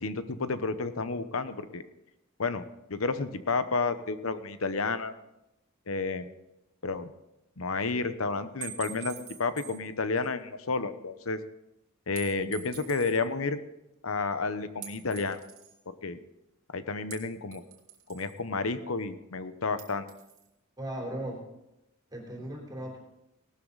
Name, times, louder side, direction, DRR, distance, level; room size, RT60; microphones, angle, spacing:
voice 1, 0.0-1.8 2.4-5.1 5.9-6.3 6.8-7.1 7.6-11.4 12.1-13.6 14.0-15.4 16.0-16.2 16.7-17.6 18.1-20.1, left 4 dB, 80° left, 12 dB, 1.0 m, -31 dB
sound 1, 8.6-9.9 10.2-10.3 12.2-13.2 14.8-15.8 17.1-18.4 19.8-20.5, right 11 dB, 80° right, 2.3 m, -45 dB
voice 2, 20.8-21.5 22.1-23.0, right 1 dB, 20° right, -1 dB, 3.4 m, -37 dB
18.0 x 12.5 x 4.0 m, 0.89 s
head